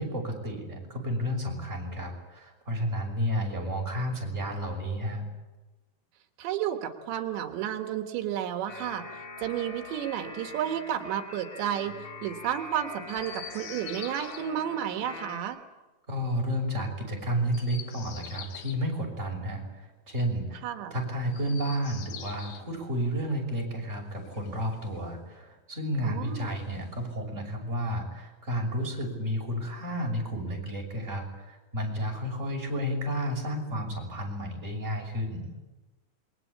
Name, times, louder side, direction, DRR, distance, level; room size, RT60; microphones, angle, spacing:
voice 1, 0.0-5.2 16.1-20.6 20.9-35.5, equal, 15° right, 0 dB, 6.2 m, -31 dB
voice 2, 6.4-9.0 9.4-15.6 20.6-20.9 26.0-26.6, right 10 dB, 85° right, 6 dB, 3.8 m, -32 dB
sound 1, 8.7-15.4, left 3 dB, 35° left, 3.1 m, -43 dB
Chirp tweet, 13.0-14.4 17.4-18.8 21.2-22.7 24.1-25.2 26.3-27.2, left 8 dB, 80° left, 4.3 m, -45 dB
27.5 x 23.0 x 8.6 m, 1.1 s
omnidirectional pair, 5.0 m